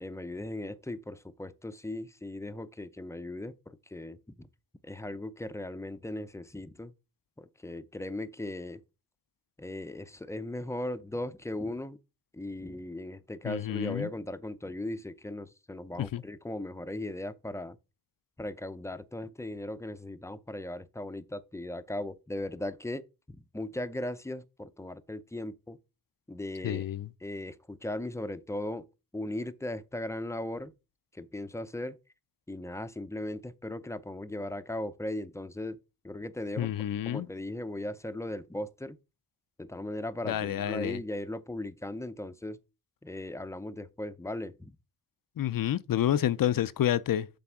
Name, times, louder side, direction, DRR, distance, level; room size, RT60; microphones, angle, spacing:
voice 1, 0.0-4.5 4.8-6.9 7.4-8.8 9.6-12.0 12.3-17.8 18.4-25.8 26.3-26.8 27.2-28.8 29.1-30.7 31.1-32.0 32.5-35.8 36.0-36.7 37.1-39.0 39.6-42.6 43.0-44.8, left 1 dB, 10° left, 0.5 m, -38 dB
voice 2, 13.4-14.1 16.0-16.2 26.6-27.1 36.6-37.3 40.2-41.0 45.4-47.3, left 11 dB, 60° left, 0.5 m, -29 dB
7.8 x 3.4 x 5.9 m
wide cardioid pair, 95°, 38 cm